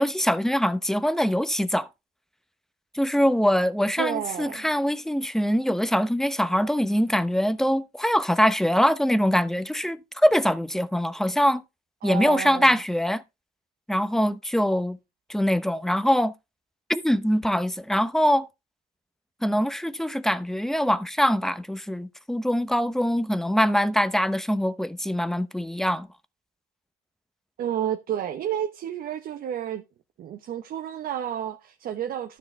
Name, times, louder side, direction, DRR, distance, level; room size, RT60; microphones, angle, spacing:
voice 1, 0.0-1.9 2.9-11.6 12.0-13.2 13.9-15.0 15.3-16.3 16.9-18.5 19.4-26.1, equal, ahead, 0.8 m, -23 dB
voice 2, 4.0-4.7 12.0-12.7 27.6-29.8 30.2-32.4, right 10 dB, 60° right, 1.1 m, -31 dB
12.5 x 6.3 x 3.4 m
cardioid pair, 110°, 17 cm